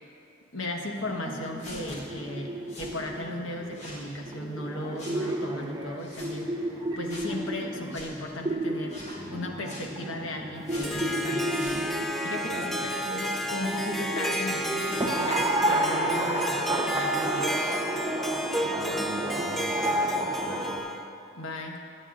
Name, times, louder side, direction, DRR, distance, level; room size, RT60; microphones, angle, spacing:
voice 1, 0.5-6.5 7.0-9.0 9.3-17.6 21.3-21.8, left 1 dB, 75° left, 1 dB, 1.3 m, -36 dB
sound 1, 1.0-20.8, right 1 dB, 20° right, 0.8 m, -32 dB
sound 2, 1.6-2.0 2.7-3.0 3.7-4.0 5.0-5.2 6.0-6.3 7.1-7.3 7.9-8.1 8.9-9.2 9.6-9.9 10.7-11.1 11.5-11.8, left 1 dB, 35° left, 2.0 m, -43 dB
Harp, 10.5-21.1, right 1 dB, ahead, 0.4 m, -32 dB
voice 2, 12.5-12.9 18.6-20.9, right 1 dB, 65° right, -1 dB, 1.5 m, -39 dB
21.5 x 8.9 x 2.5 m, 2.5 s
head